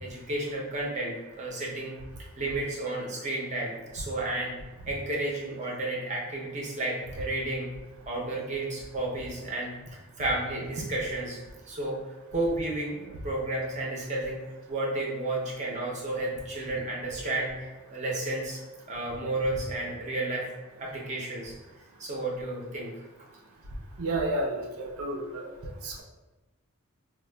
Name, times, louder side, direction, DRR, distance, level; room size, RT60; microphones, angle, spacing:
voice 1, 0.0-2.0 2.4-4.6 4.9-7.7 8.1-12.0 12.3-14.4 14.7-18.6 18.9-20.5 20.8-21.5 22.0-23.0, right 2 dB, 35° right, -3 dB, 0.6 m, -32 dB
voice 2, 24.0-25.5 25.8-26.0, right 2 dB, 80° right, 1 dB, 0.5 m, -31 dB
4.1 x 2.2 x 2.2 m, 1.1 s
head